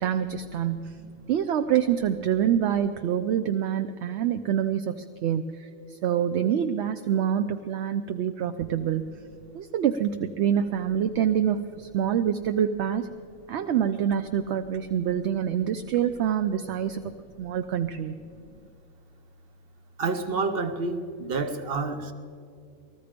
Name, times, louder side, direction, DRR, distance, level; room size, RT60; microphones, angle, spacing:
voice 1, 0.0-0.9 1.3-9.1 9.5-13.1 13.5-17.1 17.4-18.2, right 9 dB, 65° right, 8 dB, 0.8 m, -26 dB
voice 2, 20.0-22.1, right 3 dB, 50° right, 8 dB, 1.1 m, -29 dB
20.5 x 14.0 x 5.1 m, 2.4 s
omnidirectional pair, 1.4 m